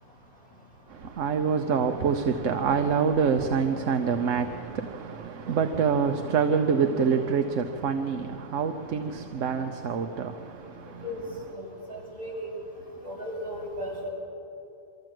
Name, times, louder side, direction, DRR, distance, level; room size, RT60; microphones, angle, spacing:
voice 1, 0.9-11.0, right 6 dB, 75° right, 1.2 m, -26 dB
voice 2, 11.5-12.6 13.0-14.1, equal, 45° right, 6.6 m, -36 dB
24.0 x 14.5 x 7.7 m
omnidirectional pair, 1.3 m